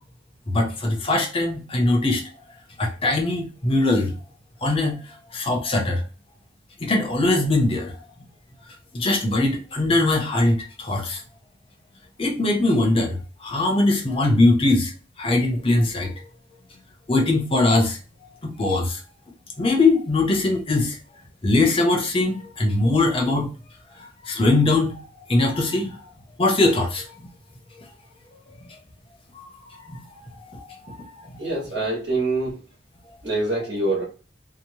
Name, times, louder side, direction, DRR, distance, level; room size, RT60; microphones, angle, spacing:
voice 1, 0.5-2.2 2.8-4.1 4.6-5.0 5.3-6.0 6.8-7.9 8.9-11.2 12.2-13.2 13.4-14.9 15.2-16.1 17.1-18.0 18.4-19.0 19.6-21.0 21.4-23.5 24.2-24.9 25.3-26.0 26.4-27.1 29.4-29.5 29.9-30.0 30.5-30.6 31.0-31.1, left 2 dB, 30° left, 1 dB, 0.7 m, -21 dB
voice 2, 31.4-32.5 33.2-34.0, right 2 dB, 65° right, -4 dB, 1.3 m, -25 dB
2.9 x 2.0 x 2.8 m, 0.37 s
head